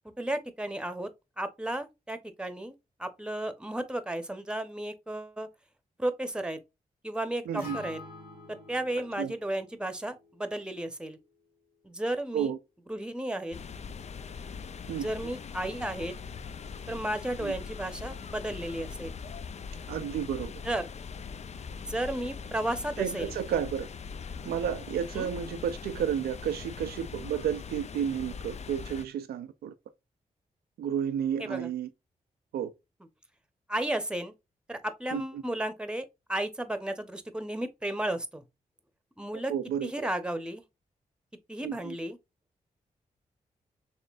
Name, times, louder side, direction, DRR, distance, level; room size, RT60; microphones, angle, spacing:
voice 1, 0.2-1.1 1.4-5.5 6.0-6.6 7.0-8.0 8.5-11.2 11.8-12.5 12.9-13.6 14.9-16.1 16.9-19.2 20.6-20.9 21.9-23.3 25.1-25.3 31.4-31.7 33.7-34.3 34.7-38.4 39.2-39.5 39.8-40.6 41.5-42.2, right 1 dB, 5° right, 0.9 m, -33 dB
voice 2, 7.5-7.8 9.2-9.3 12.3-12.6 14.9-15.1 17.4-17.5 19.9-20.5 23.0-23.9 24.5-29.7 30.8-31.9 32.5-32.7 35.1-35.2 39.5-40.1 41.6-42.0, right 9 dB, 90° right, 0.4 m, -31 dB
Acoustic guitar, 7.6-11.8, left 3 dB, 70° left, 2.0 m, -48 dB
sound 1, 13.5-29.0, left 6 dB, 45° left, 0.4 m, -41 dB
4.3 x 3.2 x 2.4 m
supercardioid pair, 45°, 16 cm